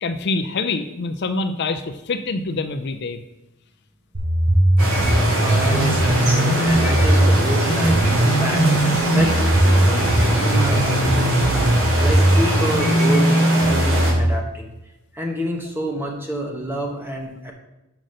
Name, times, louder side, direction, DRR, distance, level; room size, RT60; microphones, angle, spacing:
voice 1, 0.0-3.2, left 3 dB, 50° left, 8 dB, 0.5 m, -25 dB
sound 1, 4.1-14.3, right 1 dB, 55° right, 2.2 m, -18 dB
sound 2, 4.8-14.1, right 1 dB, 85° right, 2.7 m, -24 dB
voice 2, 5.4-8.6 9.1-11.4 12.0-14.7 15.1-17.5, equal, 10° right, 1 dB, 1.2 m, -28 dB
5.9 x 5.1 x 6.5 m, 0.97 s
head